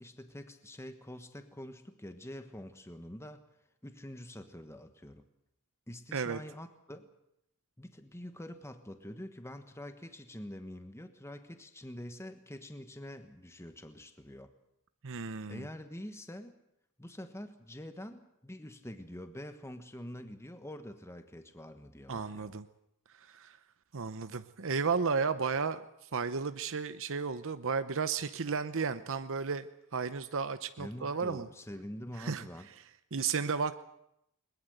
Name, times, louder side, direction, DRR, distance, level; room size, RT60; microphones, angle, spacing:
voice 1, 0.0-3.5 3.8-5.2 5.9-7.1 7.8-14.5 15.5-16.5 17.0-22.5 30.8-32.7, left 1 dB, 10° left, 8 dB, 1.3 m, -46 dB
voice 2, 15.0-15.7 22.1-22.7 23.3-23.6 23.9-25.8 26.1-29.7 29.9-31.5 32.2-32.4 33.1-33.7, right 5 dB, 60° right, 11 dB, 0.9 m, -33 dB
21.5 x 21.0 x 8.0 m, 0.78 s
head